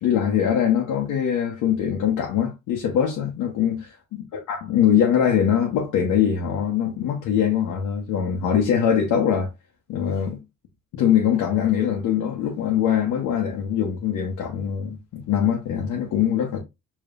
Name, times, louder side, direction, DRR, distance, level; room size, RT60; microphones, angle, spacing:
voice 1, 0.0-3.8 4.5-9.5 9.9-10.4 10.9-16.6, left 9 dB, 90° left, 1.0 m, -22 dB
4.8 x 3.0 x 2.4 m
cardioid pair, 90°, 30 cm